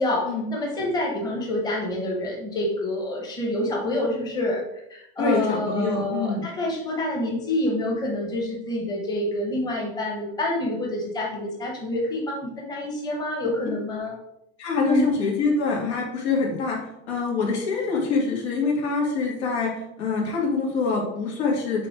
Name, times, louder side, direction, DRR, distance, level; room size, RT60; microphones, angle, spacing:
voice 1, 0.0-4.6 4.9-14.1 14.8-15.1, left 1 dB, 10° left, -1 dB, 0.9 m, -27 dB
voice 2, 5.2-6.4 14.6-16.8 17.1-21.9, left 4 dB, 80° left, -1 dB, 2.1 m, -25 dB
7.0 x 3.1 x 4.5 m, 0.82 s
supercardioid pair, 180°, 33 cm